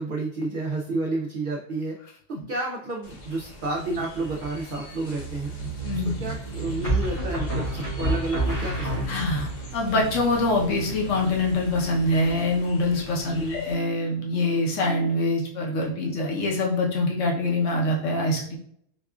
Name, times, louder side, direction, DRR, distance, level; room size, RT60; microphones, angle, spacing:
voice 1, 0.0-2.0 2.3-5.5 5.9-9.2 13.3-13.7, right 2 dB, 60° right, -2 dB, 0.5 m, -30 dB
sound 1, 3.0-13.7, right 3 dB, 40° left, 0.7 m, -37 dB
sound 2, 4.2-4.7 6.8-9.5, right 1 dB, 90° left, 2.1 m, -28 dB
voice 2, 5.8-6.2 9.1-18.6, left 2 dB, 70° left, -2 dB, 1.2 m, -24 dB
4.7 x 2.4 x 2.3 m, 0.64 s
omnidirectional pair, 1.4 m